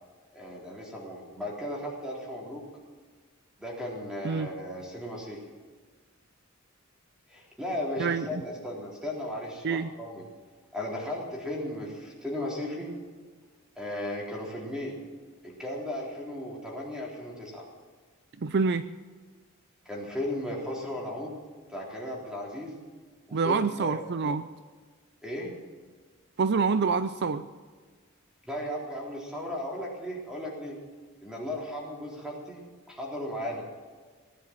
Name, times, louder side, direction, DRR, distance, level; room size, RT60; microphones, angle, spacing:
voice 1, 0.3-2.6 3.6-5.4 7.3-10.2 10.7-12.9 13.8-15.0 15.4-17.6 19.9-21.4 21.7-22.8 23.3-24.0 25.2-25.5 28.4-30.8 31.2-33.7, left 1 dB, 5° right, -3 dB, 3.8 m, -36 dB
voice 2, 8.0-8.4 9.6-9.9 18.4-18.8 23.3-24.5 26.4-27.4, right 5 dB, 50° right, 12 dB, 0.5 m, -26 dB
19.0 x 10.5 x 7.4 m, 1.5 s
head